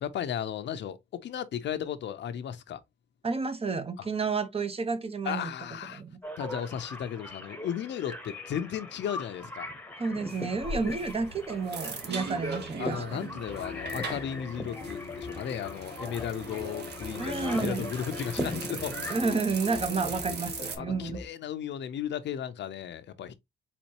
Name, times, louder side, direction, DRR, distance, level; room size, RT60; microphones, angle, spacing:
voice 1, 0.0-2.8 4.0-4.1 5.2-6.0 6.4-9.7 10.7-10.9 12.8-19.2 20.8-23.3, left 9 dB, 65° left, 0.7 m, -35 dB
voice 2, 3.2-5.5 5.9-6.2 10.0-13.3 17.2-17.9 19.1-21.2, right 4 dB, 30° right, 1.0 m, -31 dB
sound 1, 6.2-19.3, left 1 dB, 10° left, 1.1 m, -40 dB
sound 2, 10.3-20.8, right 4 dB, 55° right, 1.4 m, -40 dB
sound 3, 13.5-21.3, left 5 dB, 30° left, 0.9 m, -41 dB
4.2 x 4.1 x 2.9 m
cardioid pair, 90°, 20 cm